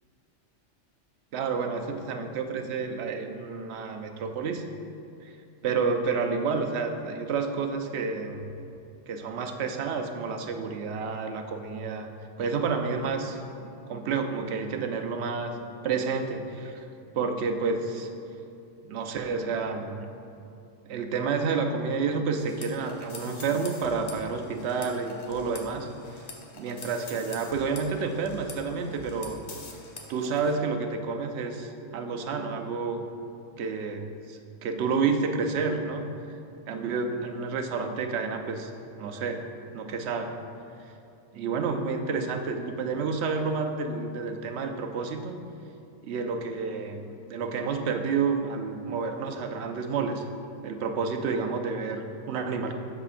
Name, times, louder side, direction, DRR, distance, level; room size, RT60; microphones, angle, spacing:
voice 1, 1.3-4.7 5.2-5.3 5.6-8.5 9.1-12.1 12.4-15.5 15.8-16.9 17.1-18.1 18.8-20.1 20.9-25.9 26.5-29.4 30.1-33.1 33.6-36.1 36.7-38.7 39.0-39.5 39.7-40.4 41.3-45.4 46.0-50.2 50.6-52.8, right 5 dB, 65° right, 5 dB, 0.8 m, -30 dB
sound 1, 22.4-30.5, left 3 dB, 40° left, 0.6 m, -45 dB
12.5 x 4.9 x 2.5 m, 2.6 s
omnidirectional pair, 1.3 m